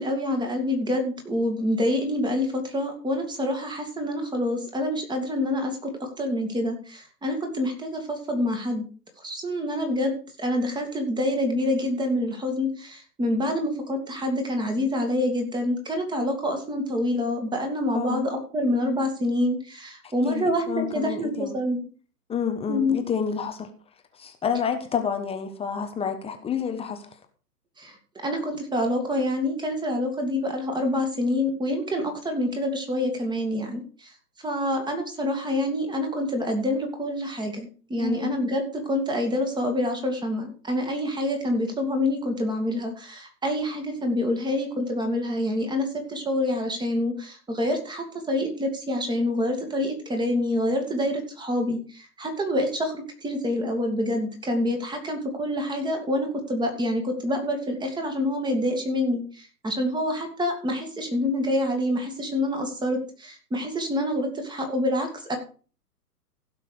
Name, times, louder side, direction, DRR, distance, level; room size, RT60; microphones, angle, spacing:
voice 1, 0.0-8.8 9.2-21.8 22.7-23.0 27.8-28.0 28.2-34.1 34.4-65.4, left 1 dB, 10° right, 4 dB, 2.3 m, -27 dB
voice 2, 20.0-21.6 22.3-23.7 24.1-27.1 38.0-38.3, left 7 dB, 10° left, 6 dB, 1.2 m, -29 dB
16.0 x 6.0 x 5.0 m, 0.39 s
hypercardioid pair, 125°, 48 cm